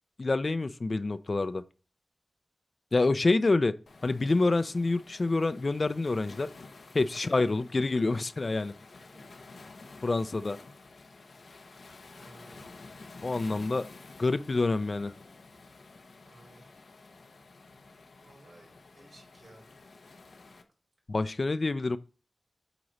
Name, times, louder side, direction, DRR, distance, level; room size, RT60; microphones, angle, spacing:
voice 1, 0.2-1.6 2.9-3.8 4.0-6.5 6.9-8.7 10.0-10.6 13.2-13.9 14.2-15.1 21.1-22.0, left 3 dB, 50° left, 0.5 m, -27 dB
Waves surf, 3.9-20.6, left 3 dB, 80° left, 0.8 m, -51 dB
voice 2, 8.9-9.4 12.1-12.7 16.3-16.7 18.1-19.7, right 1 dB, 75° right, 3.9 m, -57 dB
8.0 x 3.0 x 5.4 m
wide cardioid pair, 75°, 0 cm